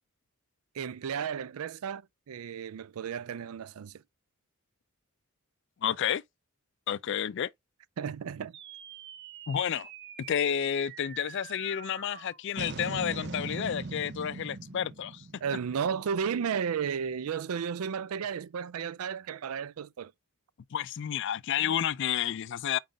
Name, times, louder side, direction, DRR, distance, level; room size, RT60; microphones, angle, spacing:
voice 1, 0.7-4.0 8.0-8.6 15.4-20.1, right 7 dB, 85° right, 0.4 m, -33 dB
voice 2, 5.8-6.2 6.9-7.5 9.5-9.9 10.3-15.2 20.7-22.8, left 9 dB, 55° left, 0.4 m, -30 dB
sound 1, 8.5-17.1, right 3 dB, 55° right, 0.8 m, -42 dB
4.9 x 3.8 x 5.1 m
head